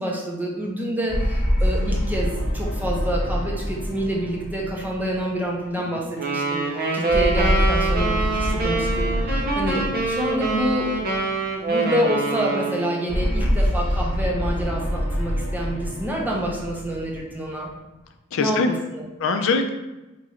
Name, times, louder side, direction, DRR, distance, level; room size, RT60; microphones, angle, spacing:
voice 1, 0.0-10.9 11.6-17.7 18.4-19.0, equal, 10° right, -2 dB, 0.6 m, -27 dB
sound 1, 1.1-5.7 7.1-11.5 13.1-17.7, equal, 30° left, 1.0 m, -25 dB
sound 2, 6.2-13.0, right 3 dB, 45° right, 0.7 m, -25 dB
voice 2, 13.2-13.5 18.3-18.7 19.2-19.7, left 4 dB, 65° left, 6 dB, 0.4 m, -24 dB
3.0 x 2.5 x 4.2 m, 1.0 s
head